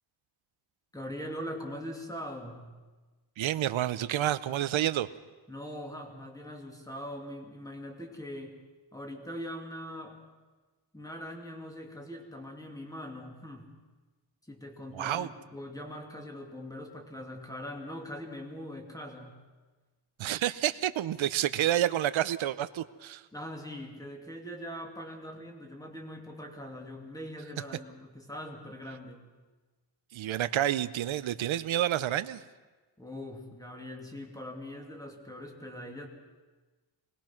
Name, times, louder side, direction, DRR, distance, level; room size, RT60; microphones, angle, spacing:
voice 1, 0.9-2.7 5.5-8.5 8.9-10.2 10.9-13.7 14.5-19.4 23.3-29.2 33.0-36.1, equal, 5° left, 2 dB, 2.7 m, -42 dB
voice 2, 3.4-5.1 14.9-15.3 20.2-23.2 30.1-32.4, right 12 dB, 75° right, 14 dB, 0.9 m, -29 dB
24.5 x 20.0 x 6.0 m, 1.3 s
wide cardioid pair, 155°, 48 cm